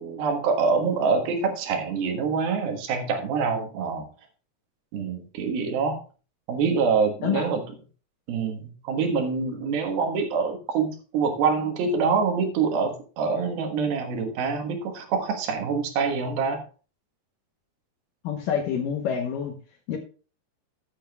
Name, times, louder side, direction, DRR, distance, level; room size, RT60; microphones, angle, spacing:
voice 1, 0.0-4.1 4.9-6.0 6.5-7.6 8.3-16.6, right 5 dB, 85° right, 5 dB, 3.4 m, -25 dB
voice 2, 18.2-19.5 19.9-20.0, left 7 dB, 70° left, 3 dB, 2.5 m, -27 dB
14.0 x 8.7 x 2.3 m, 0.37 s
omnidirectional pair, 4.2 m